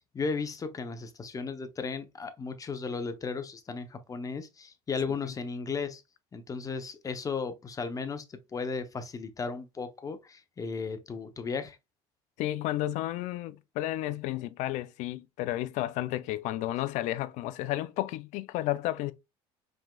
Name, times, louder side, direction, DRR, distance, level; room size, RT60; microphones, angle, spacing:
voice 1, 0.1-6.0 6.3-11.8, left 5 dB, 25° left, 0.8 m, -35 dB
voice 2, 12.4-19.1, left 15 dB, 65° left, 0.5 m, -32 dB
5.0 x 3.7 x 2.3 m
supercardioid pair, 95°, 13 cm